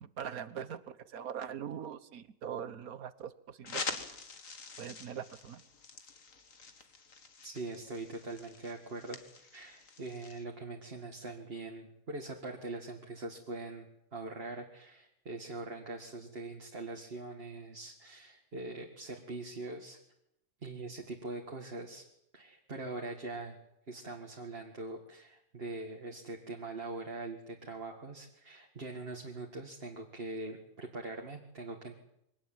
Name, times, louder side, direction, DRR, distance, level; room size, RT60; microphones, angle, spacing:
voice 1, 0.0-4.0 4.8-5.6, right 8 dB, 85° right, 14 dB, 1.6 m, -42 dB
sound 1, 3.6-10.4, left 4 dB, 65° left, 2.2 m, -45 dB
voice 2, 7.4-20.0 20.6-22.0 22.3-23.6 23.9-32.0, right 3 dB, 45° right, 1 dB, 2.2 m, -42 dB
23.5 x 18.0 x 9.1 m, 0.81 s
omnidirectional pair, 1.5 m